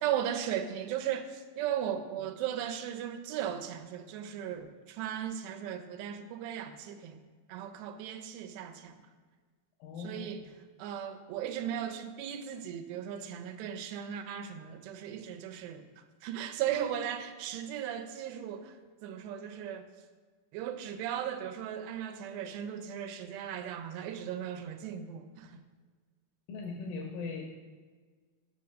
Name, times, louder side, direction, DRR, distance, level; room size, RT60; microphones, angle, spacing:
voice 1, 0.0-7.2 7.5-9.0 10.0-10.4 10.8-15.8 16.2-18.7 19.0-19.9 20.5-25.5, right 9 dB, 90° right, 6 dB, 2.8 m, -37 dB
voice 2, 9.8-10.3 26.5-27.5, left 4 dB, 85° left, 2 dB, 2.0 m, -39 dB
6.0 x 5.8 x 6.3 m, 1.5 s
omnidirectional pair, 4.7 m